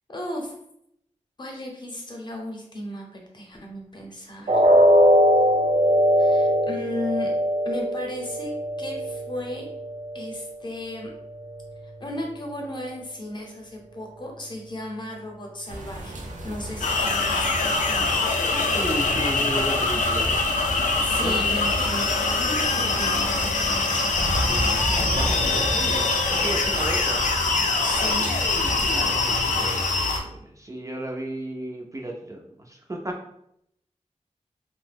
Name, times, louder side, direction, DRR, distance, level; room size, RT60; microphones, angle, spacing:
voice 1, 0.1-0.5 1.4-4.7 6.2-7.3 7.6-8.5 8.8-9.7 10.1-11.1 12.0-18.0 21.0-23.9 27.8-28.3, left 1 dB, 35° left, 0 dB, 0.7 m, -35 dB
sound 1, 4.5-10.4 10.8-11.0 11.5-11.6, equal, 70° right, 0.8 m, -21 dB
sound 2, 15.7-29.5, right 1 dB, 85° right, 0.5 m, -34 dB
sound 3, 16.8-30.2, left 3 dB, 85° left, 0.4 m, -23 dB
voice 2, 18.7-20.4 21.2-21.4 24.5-27.3 28.9-33.1, right 1 dB, 25° right, 0 dB, 0.4 m, -34 dB
2.7 x 2.1 x 3.3 m, 0.75 s
wide cardioid pair, 90°, 13 cm